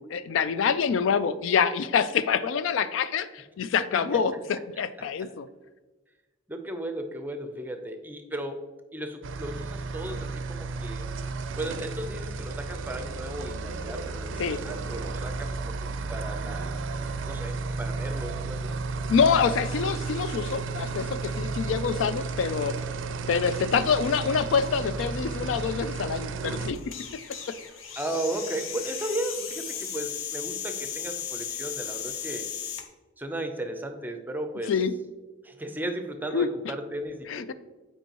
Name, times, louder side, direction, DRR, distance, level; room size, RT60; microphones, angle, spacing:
voice 1, 0.0-5.5 14.4-14.6 19.1-22.8 23.3-26.8 34.7-34.9 36.3-36.5 37.3-37.5, left 6 dB, 75° left, 14 dB, 0.3 m, -26 dB
voice 2, 6.5-8.6 8.9-11.1 11.6-15.7 16.1-16.8 17.3-18.8 23.8-23.9 28.0-32.5 33.2-34.8 35.4-37.5, right 1 dB, 10° right, 6 dB, 0.6 m, -35 dB
sound 1, 9.2-26.7, right 4 dB, 70° right, 0.4 m, -33 dB
sound 2, 26.7-32.9, left 8 dB, 90° left, 0.7 m, -36 dB
8.2 x 4.5 x 2.9 m, 1.2 s
head